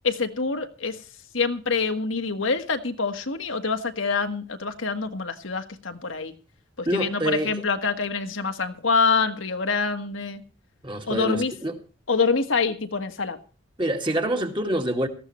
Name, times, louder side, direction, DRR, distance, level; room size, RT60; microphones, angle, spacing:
voice 1, 0.0-1.0 1.3-6.3 6.8-10.4 11.1-11.5 12.1-13.4, left 4 dB, 75° left, 1.6 m, -26 dB
voice 2, 6.9-7.5 10.8-11.8 13.8-15.1, right 1 dB, 25° right, 2.2 m, -26 dB
18.5 x 14.5 x 3.2 m
head